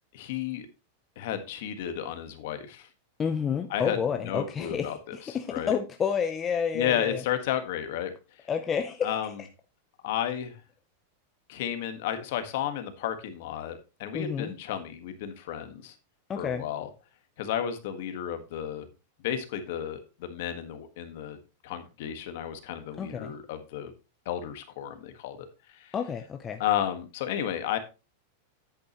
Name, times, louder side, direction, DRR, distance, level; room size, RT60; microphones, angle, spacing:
voice 1, 0.1-0.7 1.2-2.9 3.7-5.8 6.7-8.1 9.0-9.4 10.0-10.6 11.5-15.9 16.4-16.9 17.4-18.9 19.2-21.4 21.6-23.9 24.2-25.5 25.7-25.9 26.6-27.8, left 10 dB, 50° left, 8 dB, 1.5 m, -32 dB
voice 2, 3.2-7.2 8.5-9.1 14.1-14.5 16.3-16.6 23.0-23.3 25.9-26.6, left 7 dB, 15° left, 6 dB, 0.5 m, -30 dB
10.0 x 8.6 x 3.0 m, 0.29 s
supercardioid pair, 180°, 0 cm